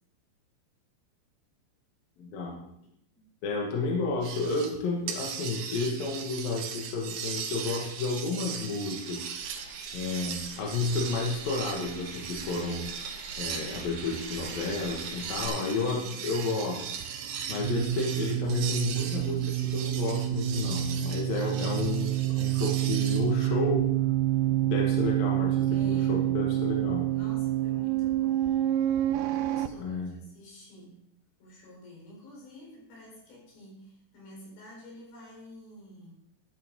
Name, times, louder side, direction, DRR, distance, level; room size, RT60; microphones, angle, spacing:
voice 1, 2.2-2.7 3.4-9.6 9.9-13.0 13.4-16.8 17.5-24.0 24.7-27.1 29.8-30.2, left 3 dB, 60° left, -2 dB, 3.3 m, -31 dB
sound 1, 4.2-4.8 5.1-23.5, right 7 dB, 70° right, 2.8 m, -39 dB
sound 2, 8.4-15.5, right 2 dB, 35° right, 3.8 m, -46 dB
voice 2, 15.2-16.3 24.4-24.7 25.7-26.4 27.1-31.0 31.4-36.1, left 1 dB, 85° left, -3 dB, 6.8 m, -50 dB
sound 3, 16.8-29.7, right 13 dB, 90° right, 2.9 m, -28 dB
13.5 x 10.0 x 3.7 m, 0.74 s
omnidirectional pair, 5.0 m